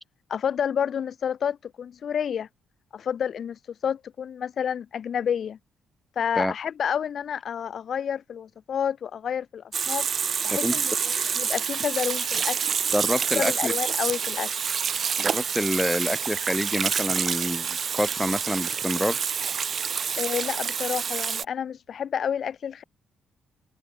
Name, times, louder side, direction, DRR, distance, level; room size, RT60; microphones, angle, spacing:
voice 1, 0.3-2.5 2.9-5.6 6.2-10.1 10.4-12.6 13.4-14.5 20.2-22.8, left 8 dB, 55° left, 1.7 m, -29 dB
Water tap faucet / Sink (filling or washing), 9.7-21.4, right 7 dB, 50° right, 0.3 m, -27 dB
voice 2, 12.9-13.7 15.2-19.2, equal, 5° left, 0.5 m, -27 dB
cardioid pair, 90°, 0 cm